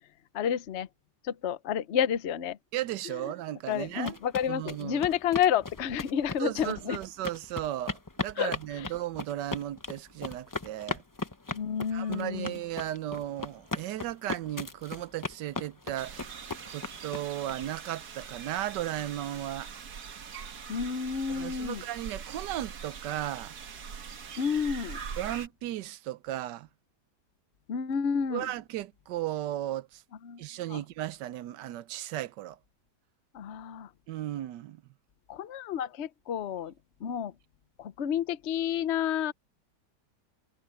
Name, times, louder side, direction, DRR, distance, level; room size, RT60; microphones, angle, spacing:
voice 1, 0.3-0.9 1.2-2.6 3.7-7.0 8.4-8.9 11.5-12.5 20.7-21.8 24.4-25.0 27.7-28.5 30.2-30.4 30.7-30.8 33.3-33.9 35.3-36.7 37.0-37.3 37.8-39.3, left 8 dB, 50° left, 0.9 m, -30 dB
voice 2, 2.7-4.2 4.5-5.1 6.4-11.0 11.9-16.4 16.7-19.7 21.3-23.5 25.2-26.7 28.3-30.0 30.4-32.6 34.1-34.8, right 13 dB, 85° right, 1.3 m, -35 dB
sound 1, 3.7-17.5, left 3 dB, 25° left, 0.4 m, -37 dB
sound 2, 16.0-25.5, right 6 dB, 65° right, 1.9 m, -43 dB
omnidirectional pair, 1.8 m